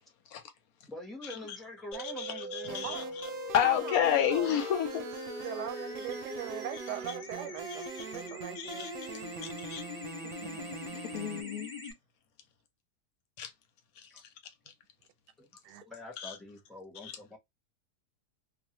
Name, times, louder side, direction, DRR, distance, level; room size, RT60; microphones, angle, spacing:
voice 1, 0.9-3.1 14.1-14.2 15.4-15.5 15.8-17.4, left 2 dB, ahead, 0.6 m, -45 dB
sound 1, 1.9-11.9, left 2 dB, 30° left, 0.9 m, -42 dB
voice 2, 2.0-3.0 3.5-5.1 7.7-7.8 8.6-8.9 9.4-9.8 11.1-11.7 13.4-13.5 16.2-16.4 17.0-17.1, left 10 dB, 70° left, 1.1 m, -30 dB
sound 2, 2.7-11.4, right 7 dB, 70° right, 0.9 m, -44 dB
voice 3, 3.6-4.6 5.4-8.9 10.2-10.7 15.6-15.8, right 12 dB, 90° right, 1.2 m, -41 dB
2.4 x 2.4 x 2.8 m
omnidirectional pair, 1.7 m